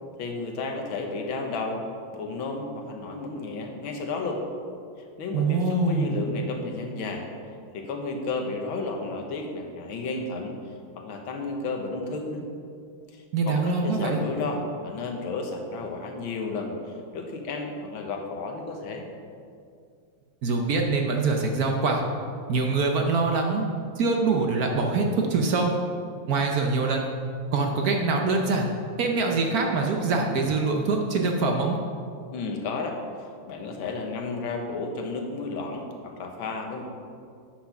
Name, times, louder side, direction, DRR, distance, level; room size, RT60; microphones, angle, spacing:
voice 1, 0.2-1.8 2.1-4.4 5.2-7.3 7.7-10.5 11.0-12.4 13.1-16.7 17.1-19.0 32.3-36.9, left 3 dB, 85° left, 3 dB, 1.8 m, -32 dB
voice 2, 5.3-6.2 13.3-14.2 20.4-22.0 22.5-23.6 24.0-25.7 26.3-27.1 27.5-28.7 29.0-31.8, right 3 dB, 60° right, 2 dB, 1.1 m, -24 dB
8.4 x 6.1 x 5.8 m, 2.3 s
omnidirectional pair, 2.1 m